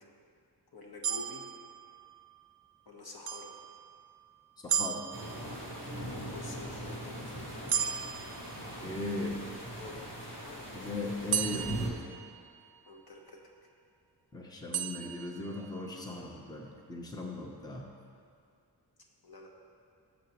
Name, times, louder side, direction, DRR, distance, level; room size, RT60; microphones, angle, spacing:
voice 1, 0.7-1.4 2.9-3.5 6.1-8.0 8.6-9.0 9.7-10.6 12.9-13.4 19.2-19.5, left 2 dB, 60° left, 0 dB, 1.3 m, -49 dB
sound 1, 1.0-2.4 3.3-4.2 4.7-5.9 7.7-9.2 11.3-12.9 14.7-15.9, right 9 dB, 65° right, 0.5 m, -36 dB
voice 2, 4.6-5.0 8.8-9.4 10.7-12.0 14.3-17.9, left 2 dB, 10° left, 0 dB, 0.8 m, -38 dB
sound 2, 5.1-11.9, right 1 dB, 30° left, 2.0 m, -41 dB
16.0 x 7.2 x 3.0 m, 2.3 s
wide cardioid pair, 150°, 41 cm